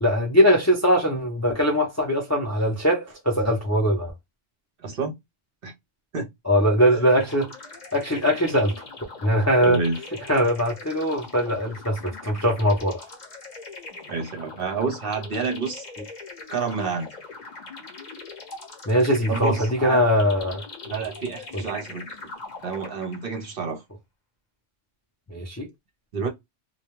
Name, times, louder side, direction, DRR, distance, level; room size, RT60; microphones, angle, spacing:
voice 1, 0.0-4.1 6.5-7.5 7.9-8.8 9.2-9.8 10.3-13.0 18.9-20.6 21.5-21.6 25.3-25.7, equal, 20° left, 0.4 m, -21 dB
voice 2, 4.8-5.2 5.6-5.7 6.1-6.3 9.6-10.0 14.1-15.9 16.5-17.1 19.3-20.0 20.8-22.1 22.6-23.8 26.1-26.3, right 4 dB, 55° right, 0.8 m, -29 dB
sound 1, 7.1-23.4, left 3 dB, 40° left, 0.9 m, -41 dB
2.3 x 2.2 x 3.0 m
omnidirectional pair, 1.2 m